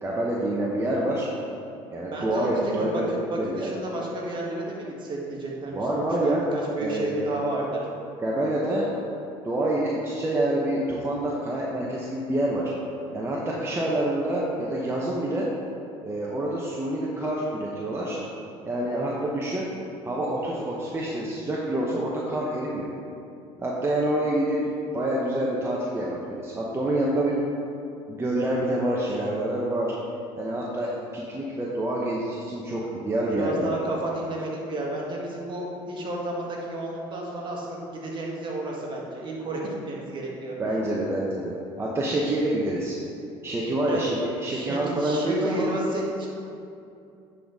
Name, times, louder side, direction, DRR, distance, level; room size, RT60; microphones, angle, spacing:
voice 1, 0.0-1.2 1.9-3.0 3.4-3.7 5.7-6.4 6.8-7.1 8.2-8.9 9.4-12.7 13.1-15.5 16.0-18.2 18.6-19.7 20.0-22.9 23.6-27.4 28.1-29.9 30.4-33.7 40.6-41.5 41.8-43.0 43.4-45.7, right 1 dB, 20° right, -4 dB, 0.9 m, -27 dB
voice 2, 2.1-3.0 3.3-7.8 18.8-19.3 33.3-40.6 43.9-44.0 44.5-46.3, right 2 dB, 40° right, -3 dB, 1.7 m, -32 dB
9.9 x 4.1 x 3.6 m, 2.6 s
supercardioid pair, 90°, 12 cm